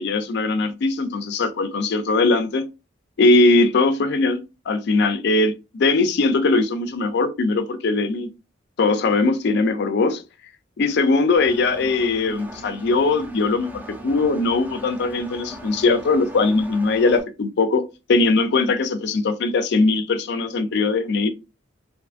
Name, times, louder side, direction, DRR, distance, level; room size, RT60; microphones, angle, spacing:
voice 1, 0.0-2.7 3.2-8.3 8.8-10.2 10.8-17.8 18.1-21.3, left 3 dB, 60° left, 0.4 m, -20 dB
Engine, 11.4-17.2, right 1 dB, 10° right, 0.3 m, -39 dB
2.5 x 2.4 x 2.4 m
head